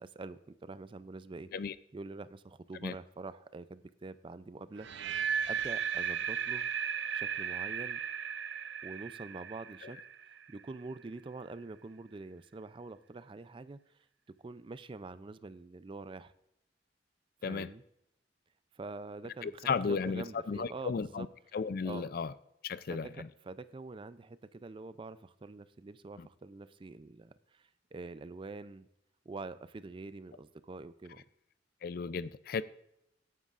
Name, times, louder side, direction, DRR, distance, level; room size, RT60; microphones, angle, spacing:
voice 1, 0.0-1.5 1.9-5.2 5.5-6.7 7.1-8.0 8.8-13.8 14.4-16.3 17.4-17.8 18.7-21.3 21.8-22.1 22.9-28.9 29.3-31.2, right 3 dB, 30° right, 0.4 m, -45 dB
sound 1, 4.8-10.8, right 7 dB, 80° right, 0.6 m, -36 dB
voice 2, 19.4-21.3 21.5-22.3 22.6-23.3 26.2-26.3 31.8-32.6, left 5 dB, 55° left, 0.4 m, -34 dB
17.0 x 9.4 x 2.5 m
head